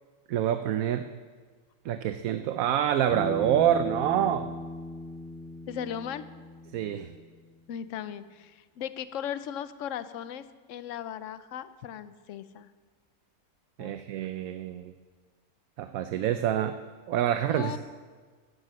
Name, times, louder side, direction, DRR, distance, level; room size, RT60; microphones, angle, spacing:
voice 1, 0.3-1.0 1.8-4.5 6.7-7.1 13.8-14.9 15.8-16.8 17.1-17.8, right 10 dB, 75° right, 9 dB, 1.1 m, -26 dB
Bass guitar, 3.1-7.3, left 1 dB, 35° left, 5.7 m, -39 dB
voice 2, 5.7-6.2 7.7-12.7 13.8-13.9 17.5-17.8, left 9 dB, 65° left, 13 dB, 1.0 m, -37 dB
13.0 x 11.5 x 7.6 m, 1.5 s
omnidirectional pair, 1.5 m